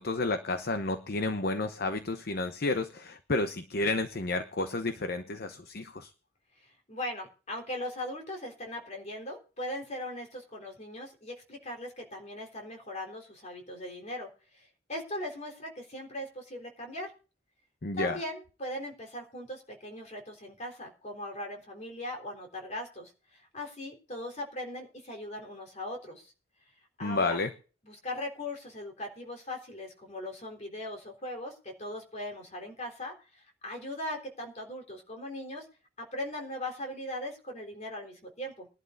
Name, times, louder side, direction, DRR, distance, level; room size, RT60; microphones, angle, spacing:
voice 1, 0.0-6.1 17.8-18.2 27.0-27.5, left 2 dB, 50° left, 9 dB, 0.8 m, -31 dB
voice 2, 6.6-17.1 18.0-26.3 27.0-27.4 27.8-35.7 36.0-38.7, left 1 dB, 35° left, 2 dB, 3.7 m, -39 dB
21.5 x 11.5 x 2.6 m, 0.37 s
head